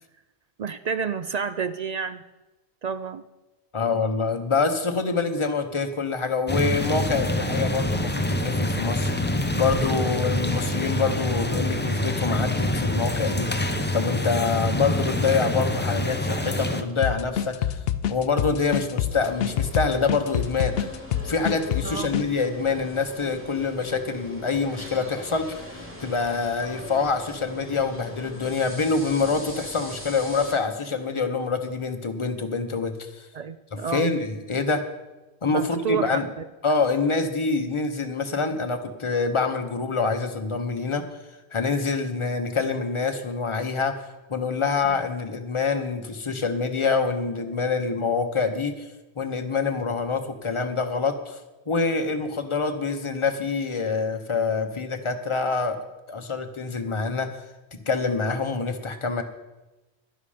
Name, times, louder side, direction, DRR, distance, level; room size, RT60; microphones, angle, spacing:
voice 1, 0.6-2.2 2.8-3.2 21.8-22.1 33.3-34.2 35.5-36.4 44.8-45.0, right 6 dB, 55° right, 11 dB, 0.4 m, -30 dB
voice 2, 3.7-9.1 9.5-17.8 18.1-20.9 21.2-33.3 33.7-34.8 35.4-36.3 36.6-41.1 41.5-48.9 49.2-51.4 51.7-55.8 56.1-57.3 57.9-59.2, left 4 dB, 30° left, 6 dB, 1.0 m, -26 dB
sound 1, 6.5-16.8, left 1 dB, 15° left, 0.5 m, -26 dB
sound 2, 17.0-22.3, left 10 dB, 65° left, 0.7 m, -26 dB
sound 3, 19.1-30.5, equal, 10° right, 2.2 m, -40 dB
11.5 x 11.0 x 5.0 m, 1.1 s
omnidirectional pair, 1.1 m